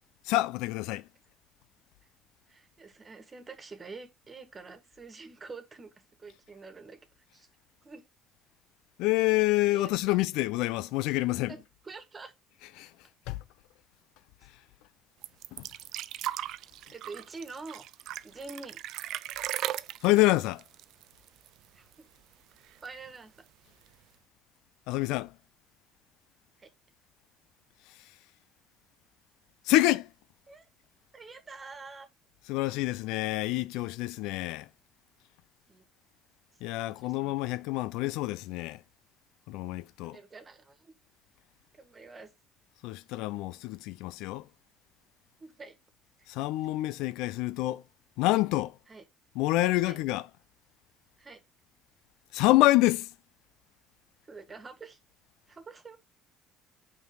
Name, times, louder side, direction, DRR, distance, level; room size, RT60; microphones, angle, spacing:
voice 1, 0.3-1.0 9.0-11.5 12.8-12.9 13.3-13.4 15.5-15.7 20.0-20.6 24.9-25.3 29.7-30.1 32.5-34.7 36.6-38.8 39.5-40.2 42.8-44.4 46.3-47.8 48.2-48.7 49.4-50.3 52.3-53.1, left 18 dB, 80° left, 0.4 m, -27 dB
voice 2, 2.5-5.9 6.2-7.0 7.3-7.5 7.8-8.0 9.7-10.2 11.5-12.3 16.9-17.8 18.2-18.8 21.7-22.1 22.8-23.4 26.6-26.7 30.5-30.7 31.1-32.1 35.7-35.9 36.8-37.4 40.0-40.9 41.7-42.3 45.4-45.7 48.9-49.0 49.8-50.0 51.2-51.4 54.3-55.0 55.5-56.0, right 4 dB, 30° right, 1.6 m, -46 dB
sound 1, 15.2-21.7 21.9-22.0 22.3-23.1 23.9-24.0, right 13 dB, 70° right, 0.4 m, -37 dB
5.6 x 4.6 x 3.7 m
supercardioid pair, 70°, 0 cm